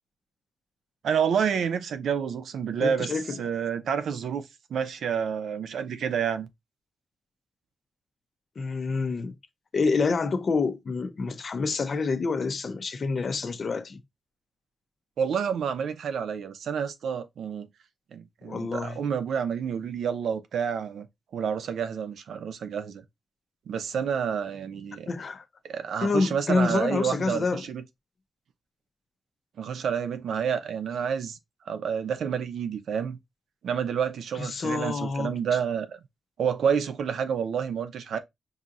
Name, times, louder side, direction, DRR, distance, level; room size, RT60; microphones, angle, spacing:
voice 1, 1.0-6.5 15.2-17.7 18.1-21.1 21.3-23.0 23.7-25.1 25.6-27.8 29.6-31.4 31.7-33.2 33.6-36.0 36.4-38.2, right 7 dB, 80° right, 0.6 m, -29 dB
voice 2, 2.8-3.4 8.6-9.3 9.7-14.0 18.4-19.0 25.1-25.4 26.0-27.7 34.4-35.4, left 4 dB, 40° left, 0.6 m, -27 dB
5.5 x 2.8 x 2.5 m
wide cardioid pair, 170°, 0 cm